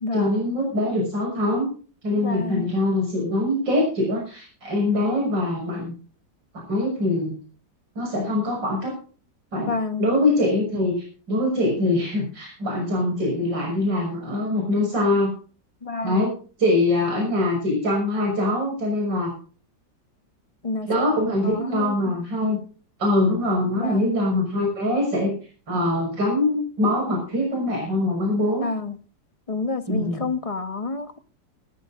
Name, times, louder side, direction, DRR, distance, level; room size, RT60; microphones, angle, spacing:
voice 1, 0.1-1.7 2.0-5.9 6.5-7.3 8.0-9.0 9.5-9.7 10.0-15.3 16.0-19.3 20.9-22.6 23.0-25.3 25.7-28.7 29.9-30.3, left 1 dB, 80° right, 0 dB, 7.0 m, -23 dB
voice 2, 2.2-2.7 9.7-10.1 15.8-16.3 20.6-20.9 21.4-22.2 23.8-24.2 28.6-29.0 29.5-31.2, left 3 dB, 25° left, 10 dB, 0.9 m, -29 dB
20.0 x 14.5 x 2.5 m, 0.38 s
omnidirectional pair, 2.0 m